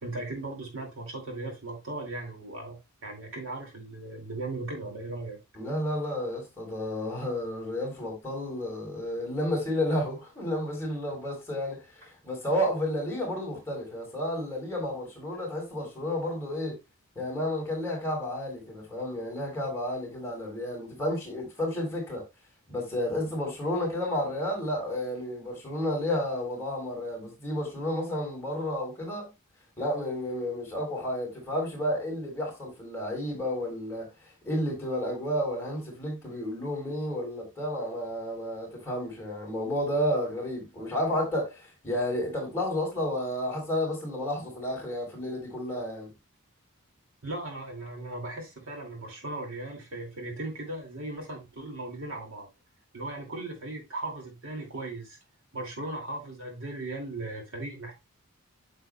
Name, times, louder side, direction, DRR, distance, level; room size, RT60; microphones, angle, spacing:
voice 1, 0.0-5.4 47.2-52.5 52.9-55.2 55.5-58.0, right 2 dB, 65° right, 2.4 m, -37 dB
voice 2, 5.5-16.7 17.1-22.2 22.7-29.3 29.8-34.1 34.4-46.1, left 1 dB, 10° left, 3.6 m, -31 dB
8.6 x 6.6 x 2.2 m
head